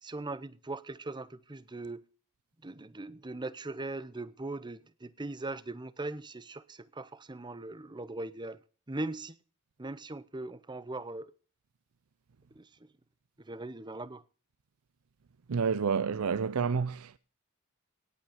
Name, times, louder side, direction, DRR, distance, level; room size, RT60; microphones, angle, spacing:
voice 1, 0.0-2.0 2.6-8.6 8.9-9.3 9.8-11.3 12.5-12.7 13.4-14.2, right 2 dB, 20° right, 0.7 m, -40 dB
voice 2, 15.5-17.2, right 6 dB, 80° right, 0.5 m, -29 dB
18.0 x 8.3 x 5.0 m
head